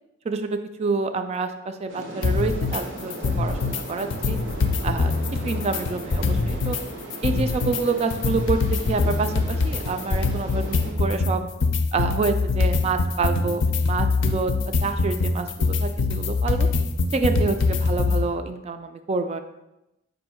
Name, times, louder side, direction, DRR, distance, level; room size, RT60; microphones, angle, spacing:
voice 1, 0.2-4.4 4.8-5.1 5.4-6.8 7.2-11.4 11.9-14.5 14.8-16.7 17.1-19.4, right 4 dB, 35° right, 8 dB, 0.3 m, -27 dB
sound 1, 1.9-10.9, right 1 dB, 80° right, 0.8 m, -38 dB
sound 2, 2.2-2.8 3.1-3.8 4.1-6.8 7.1-18.2, left 3 dB, 75° left, 0.5 m, -23 dB
4.6 x 2.6 x 4.3 m, 0.92 s
head